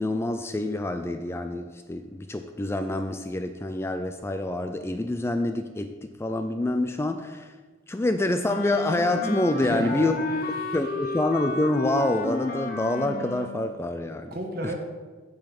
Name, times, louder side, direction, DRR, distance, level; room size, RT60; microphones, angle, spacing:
voice 1, 0.0-7.6 7.9-10.2 10.7-14.3, left 2 dB, 15° left, 8 dB, 0.3 m, -27 dB
Wind instrument woodwind instrument, 8.4-13.7, left 2 dB, 45° left, 0.7 m, -32 dB
voice 2, 9.6-10.8 14.3-14.7, right 1 dB, 50° right, 2 dB, 1.6 m, -34 dB
7.4 x 7.2 x 5.9 m, 1.3 s
head